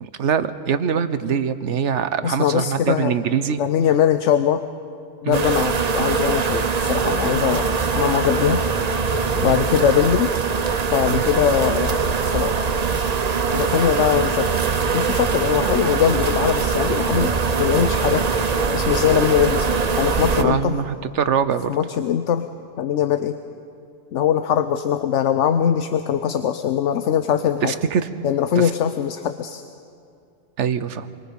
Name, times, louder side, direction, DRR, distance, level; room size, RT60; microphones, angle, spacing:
voice 1, 0.0-3.6 5.2-5.4 9.4-9.7 11.1-11.2 20.4-21.7 27.6-28.1 28.6-28.7 30.6-31.1, right 7 dB, 80° right, 12 dB, 1.2 m, -23 dB
voice 2, 2.2-3.1 3.6-4.6 5.2-8.7 9.4-10.3 10.9-12.7 13.5-14.5 14.9-18.3 18.7-20.8 21.7-22.5 22.8-23.4 24.1-27.7 28.2-29.6, left 9 dB, 85° left, 9 dB, 1.0 m, -21 dB
sound 1, 5.3-20.4, right 5 dB, 40° right, 0.8 m, -22 dB
28.5 x 24.0 x 5.3 m, 2.5 s
omnidirectional pair, 1.2 m